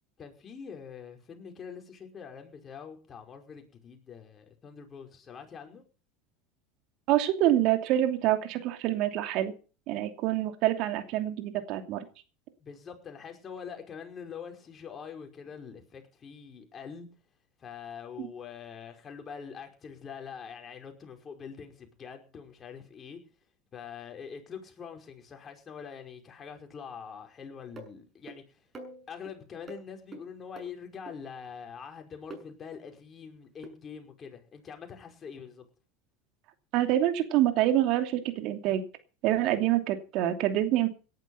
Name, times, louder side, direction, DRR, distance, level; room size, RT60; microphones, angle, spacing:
voice 1, 0.2-5.8 12.6-17.1 17.6-23.2 23.7-28.6 29.1-35.6, left 6 dB, 30° left, 4 dB, 5.2 m, -44 dB
voice 2, 7.1-9.5 9.9-12.0 18.2-18.3 36.7-38.8 39.2-40.9, right 13 dB, 55° right, 6 dB, 2.8 m, -26 dB
sound 1, 27.8-27.9 28.3-28.4 28.7-29.3 29.7-29.8 30.1-30.2 30.6-30.7 31.1-31.2 32.3-32.4 33.6-33.7, right 2 dB, 30° right, 7.3 m, -43 dB
18.0 x 11.0 x 5.7 m, 0.38 s
hypercardioid pair, 90°, 0 cm